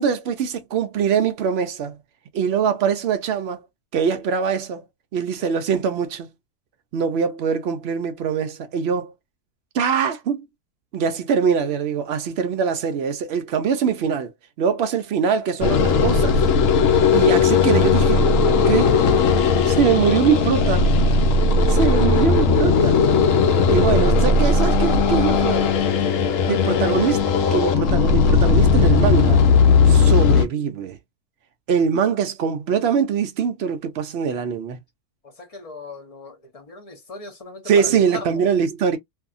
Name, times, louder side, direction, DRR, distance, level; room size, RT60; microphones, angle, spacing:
voice 1, 0.0-2.0 2.3-3.6 3.9-4.8 5.1-6.3 6.9-9.1 9.7-10.5 10.9-14.3 14.6-16.5 17.1-18.3 18.7-19.0 19.7-20.9 21.7-23.0 23.7-25.7 26.5-27.2 27.5-29.4 29.8-31.0 31.7-34.8 37.7-39.0, right 7 dB, 70° right, 0.6 m, -22 dB
sound 1, 15.6-30.5, left 4 dB, 65° left, 0.9 m, -17 dB
voice 2, 16.9-17.2 26.5-27.1 35.2-38.3, left 3 dB, 40° left, 0.5 m, -37 dB
2.7 x 2.6 x 2.4 m
omnidirectional pair, 1.6 m